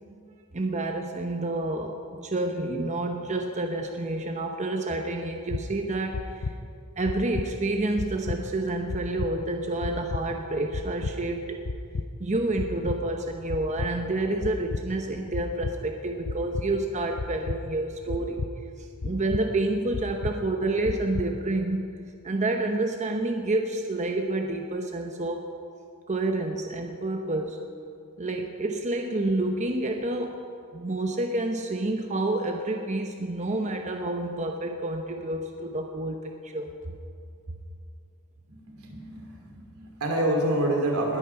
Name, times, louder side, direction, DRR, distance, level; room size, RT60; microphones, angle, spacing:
voice 1, 0.5-6.5 7.0-11.6 12.2-18.4 18.8-21.9 22.2-25.5 26.1-27.6 28.2-30.4 30.7-36.9, right 2 dB, 35° right, 4 dB, 0.8 m, -29 dB
sound 1, 5.5-5.6 6.1-6.5 7.0-7.5 8.0-8.4 8.9-9.3 9.8-10.2 10.7-11.1 11.6-12.1 12.6-13.0 13.5-13.9 14.4-14.8 15.3-15.7 16.2-16.7 17.2-17.6 18.1-18.5 19.0-19.4 19.9-20.3 20.8-21.3, left 3 dB, 65° left, 0.6 m, -31 dB
voice 2, 38.5-41.2, right 1 dB, 85° right, 0 dB, 2.9 m, -27 dB
20.0 x 8.9 x 5.9 m, 2.4 s
head